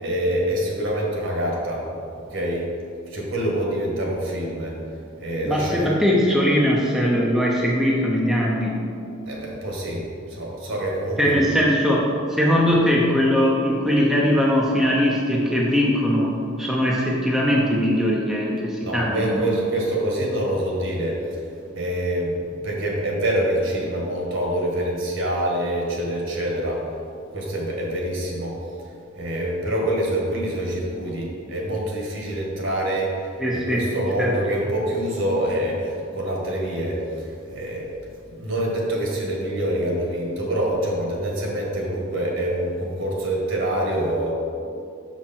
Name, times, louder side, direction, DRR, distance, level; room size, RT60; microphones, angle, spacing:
voice 1, 0.0-1.8 2.3-2.6 3.1-4.7 5.2-5.9 9.3-10.0 10.3-11.4 18.8-21.4 21.7-26.8 27.3-28.5 29.1-33.3 33.7-37.9 38.3-44.3, right 1 dB, 60° right, -2 dB, 1.7 m, -25 dB
voice 2, 5.4-8.8 11.2-19.5 33.4-33.8 34.2-34.3, equal, ahead, -4 dB, 0.7 m, -20 dB
6.4 x 6.2 x 4.4 m, 2.5 s
head